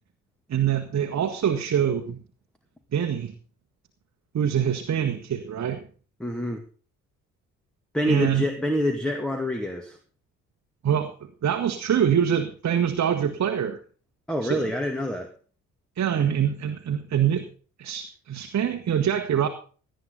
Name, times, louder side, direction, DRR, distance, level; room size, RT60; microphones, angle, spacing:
voice 1, 0.5-2.2 2.9-3.3 4.3-5.8 8.0-8.5 10.8-11.1 11.4-13.8 14.4-14.7 16.0-17.5 17.8-19.5, right 9 dB, 40° right, 5 dB, 1.5 m, -24 dB
voice 2, 6.2-6.6 7.9-10.0 14.3-15.3, left 1 dB, ahead, 5 dB, 2.2 m, -26 dB
18.0 x 10.5 x 4.0 m, 0.40 s
figure-of-eight pair, 45°, 41 cm